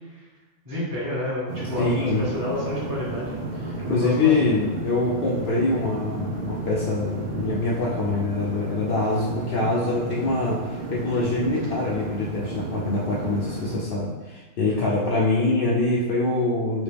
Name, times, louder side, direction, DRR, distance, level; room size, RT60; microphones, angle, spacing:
voice 1, 0.6-3.5 3.8-4.3 14.6-14.9, left 1 dB, 20° right, -8 dB, 0.6 m, -30 dB
sound 1, 1.5-13.8, right 2 dB, 90° right, 1.3 m, -33 dB
voice 2, 1.8-2.2 3.9-16.8, left 2 dB, 60° left, -6 dB, 0.6 m, -24 dB
3.2 x 2.9 x 3.3 m, 1.2 s
omnidirectional pair, 1.5 m